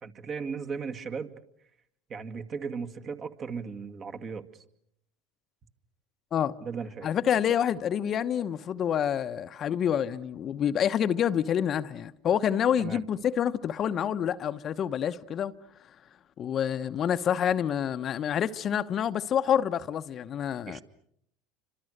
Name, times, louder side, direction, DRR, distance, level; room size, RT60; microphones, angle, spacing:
voice 1, 0.0-1.3 2.1-4.6 6.6-7.1 12.8-13.0 20.7-20.8, right 5 dB, 40° right, 2.2 m, -36 dB
voice 2, 7.0-15.5 16.4-20.8, left 9 dB, 40° left, 1.0 m, -27 dB
29.5 x 26.0 x 6.6 m
hypercardioid pair, 95°, 0 cm